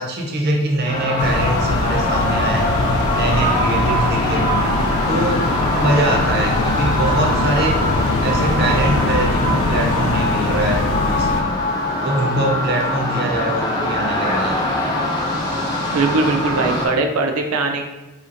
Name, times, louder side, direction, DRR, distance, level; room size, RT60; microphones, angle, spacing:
voice 1, 0.0-4.5 5.1-7.9 8.2-11.6 12.0-14.6, right 1 dB, 50° right, 0 dB, 0.6 m, -23 dB
sound 1, 0.9-16.9, left 1 dB, 20° left, 0.5 m, -22 dB
sound 2, 1.2-11.4, left 3 dB, 85° left, 0.4 m, -22 dB
voice 2, 15.9-17.8, right 3 dB, 85° right, 4 dB, 0.5 m, -20 dB
4.1 x 2.9 x 2.5 m, 1.1 s
head